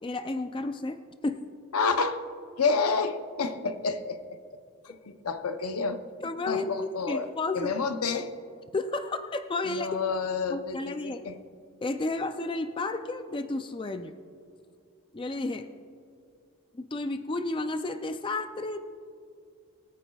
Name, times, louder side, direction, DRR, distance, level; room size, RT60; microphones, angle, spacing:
voice 1, 0.0-1.4 6.2-7.7 8.7-10.0 10.5-11.2 11.8-14.1 15.1-15.7 16.7-18.8, left 2 dB, 20° left, 8 dB, 0.4 m, -32 dB
voice 2, 1.7-2.2 2.6-4.6 4.8-6.0 6.5-8.3 9.7-11.4, left 4 dB, 80° left, 9 dB, 0.7 m, -29 dB
24.5 x 9.2 x 2.3 m, 2.4 s
head